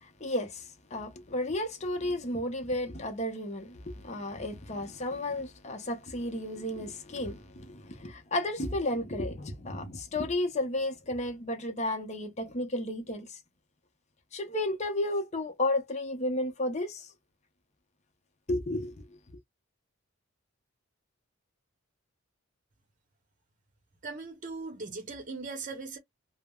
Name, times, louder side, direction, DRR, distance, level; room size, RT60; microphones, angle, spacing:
voice 1, 0.0-13.4 14.3-17.1 18.5-19.1, left 1 dB, 35° left, 0.7 m, -33 dB
voice 2, 24.0-26.0, right 3 dB, 35° right, 0.8 m, -39 dB
3.3 x 2.0 x 2.2 m
head